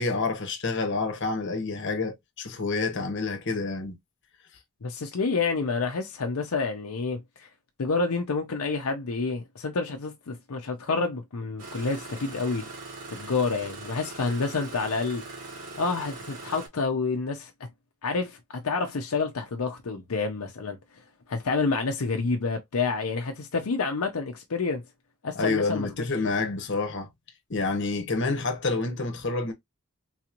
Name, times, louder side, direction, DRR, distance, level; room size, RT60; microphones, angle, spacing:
voice 1, 0.0-4.0 25.3-27.1 27.5-29.5, left 3 dB, 55° left, 1.0 m, -28 dB
voice 2, 4.8-7.5 7.8-12.7 13.1-15.2 15.8-17.5 18.0-20.8 21.3-24.8 25.2-26.1, left 4 dB, 80° left, 0.7 m, -28 dB
Engine starting, 11.6-16.7, right 3 dB, 85° right, 1.9 m, -41 dB
3.9 x 3.0 x 2.5 m
head